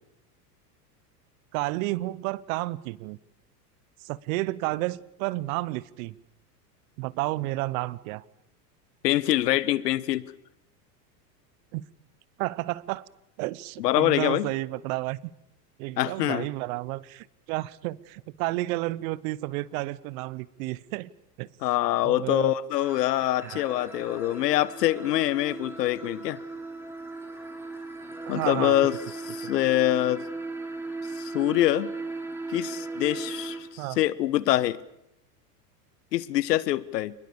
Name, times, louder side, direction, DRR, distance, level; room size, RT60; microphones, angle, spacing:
voice 1, 1.5-3.2 4.0-6.2 7.0-8.2 11.7-11.8 12.4-13.0 13.4-15.2 15.8-21.1 21.4-21.5 22.0-22.5 23.4-23.6 28.3-28.8 33.8-34.0, right 19 dB, 60° right, 1.1 m, -31 dB
voice 2, 9.0-10.2 13.8-14.5 16.0-16.5 21.6-26.4 28.3-29.0 29.2-30.3 31.2-31.9 32.5-34.8 36.1-37.1, left 14 dB, 75° left, 1.3 m, -25 dB
sound 1, 22.8-33.6, right 3 dB, 5° right, 7.3 m, -37 dB
28.5 x 21.0 x 7.0 m
hypercardioid pair, 105°, 48 cm